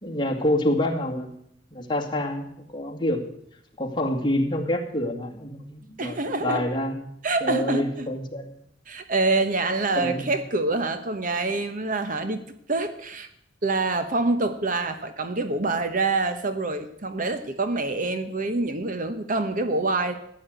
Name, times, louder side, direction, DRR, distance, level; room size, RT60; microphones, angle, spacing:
voice 1, 0.0-1.4 1.7-3.2 3.8-7.0 7.4-8.6 9.9-10.3 11.5-11.6, left 1 dB, 25° left, 1 dB, 2.3 m, -27 dB
voice 2, 6.0-6.6 7.2-8.1 8.9-12.4 12.7-13.3 13.6-20.1, right 3 dB, 45° right, 9 dB, 1.0 m, -26 dB
14.5 x 9.5 x 8.0 m, 0.73 s
head